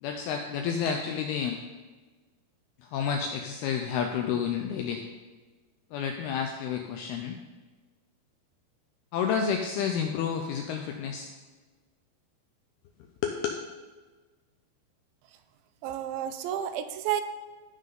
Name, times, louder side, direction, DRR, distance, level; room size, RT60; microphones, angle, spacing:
voice 1, 0.0-1.6 2.8-5.0 5.9-7.4 9.1-11.3 13.2-13.5, left 7 dB, 90° left, 3 dB, 2.3 m, -30 dB
voice 2, 15.8-17.2, right 10 dB, 85° right, 10 dB, 2.9 m, -31 dB
15.5 x 5.7 x 3.8 m, 1.3 s
omnidirectional pair, 5.2 m